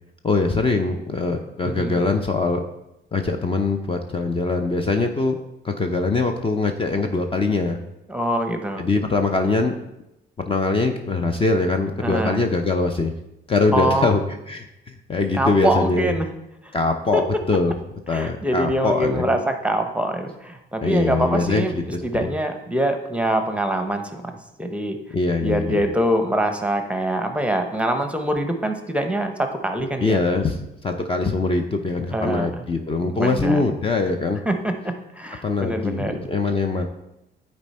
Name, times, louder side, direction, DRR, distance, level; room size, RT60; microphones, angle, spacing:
voice 1, 0.2-2.6 3.1-5.4 5.6-7.8 8.8-9.7 10.5-13.1 13.5-14.2 14.5-16.1 16.7-17.7 18.1-19.2 20.8-21.6 22.1-22.2 25.1-25.8 30.0-30.6 30.8-34.4 35.4-36.9, left 3 dB, 25° left, 5 dB, 0.6 m, -22 dB
voice 2, 1.6-2.0 8.1-8.9 12.0-12.4 13.7-14.1 15.4-16.3 16.6-16.7 17.1-17.2 18.1-24.3 24.6-25.0 25.4-30.2 32.1-32.6 33.0-33.6 34.5-36.3, right 1 dB, 5° right, 6 dB, 0.9 m, -24 dB
9.6 x 4.3 x 4.2 m, 0.89 s
cardioid pair, 90°, 20 cm